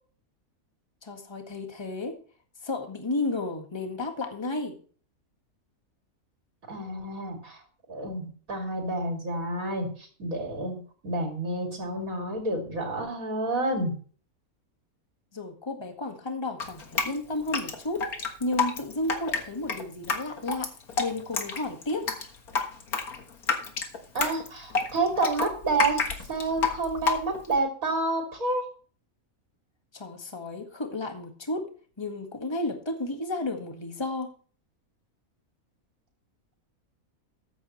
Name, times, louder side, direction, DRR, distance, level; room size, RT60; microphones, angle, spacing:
voice 1, 1.0-2.2 2.6-4.8 15.3-20.7 21.0-22.1 29.9-31.7 32.0-34.3, left 2 dB, 20° left, 4 dB, 1.7 m, -32 dB
voice 2, 6.7-7.6 7.9-10.8 11.0-13.9 24.1-26.0 26.3-28.7, right 2 dB, 70° right, 1 dB, 3.1 m, -29 dB
Drip, 16.6-27.6, left 5 dB, 80° left, 2.0 m, -29 dB
14.0 x 9.4 x 3.2 m, 0.41 s
omnidirectional pair, 1.5 m